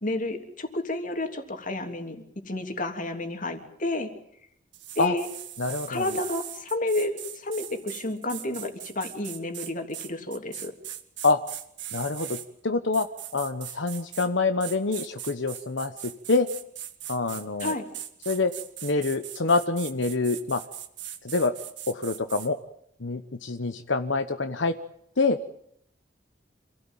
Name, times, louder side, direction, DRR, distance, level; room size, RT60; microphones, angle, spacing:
voice 1, 0.0-4.1 4.9-5.3 5.9-10.7 17.6-17.8, left 2 dB, 45° left, 5 dB, 3.1 m, -31 dB
sound 1, 4.7-12.5 12.9-14.3 14.6-22.5, right 11 dB, 70° right, 2.0 m, -40 dB
voice 2, 5.6-6.1 11.2-11.4 11.9-12.4 12.6-13.1 13.3-16.5 17.1-17.7 18.3-18.5 18.8-20.6 21.2-21.5 21.9-22.6 23.0-24.7 25.2-25.4, left 3 dB, 80° left, 8 dB, 1.1 m, -26 dB
27.5 x 16.5 x 9.1 m, 0.71 s
head